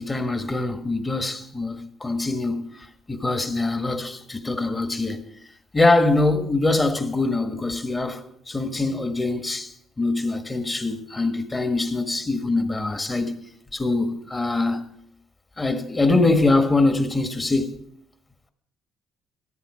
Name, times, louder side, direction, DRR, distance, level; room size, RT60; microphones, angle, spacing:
voice 1, 0.0-5.2 5.7-13.3 13.7-14.8 15.6-17.7, left 2 dB, 20° left, 1.5 m, -23 dB
14.0 x 14.0 x 5.0 m
cardioid pair, 120°, 0 cm